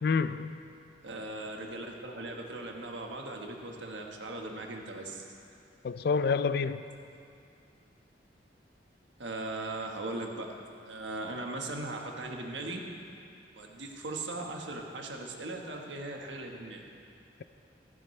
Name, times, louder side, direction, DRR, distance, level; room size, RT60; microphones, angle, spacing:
voice 1, 0.0-0.6 5.8-6.9, left 5 dB, 60° left, 0.4 m, -28 dB
voice 2, 1.0-5.2 9.2-10.5 10.9-12.8 13.6-16.8, right 2 dB, 85° right, 1.4 m, -38 dB
15.5 x 13.5 x 3.2 m
head